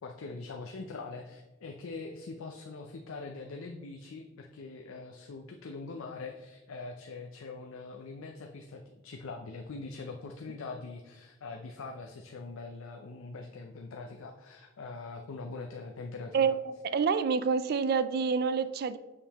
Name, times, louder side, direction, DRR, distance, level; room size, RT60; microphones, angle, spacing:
voice 1, 0.0-16.6, left 3 dB, 80° left, 3 dB, 0.5 m, -43 dB
voice 2, 16.3-19.0, right 5 dB, 50° right, 14 dB, 0.3 m, -28 dB
6.6 x 5.4 x 2.9 m, 1.1 s
head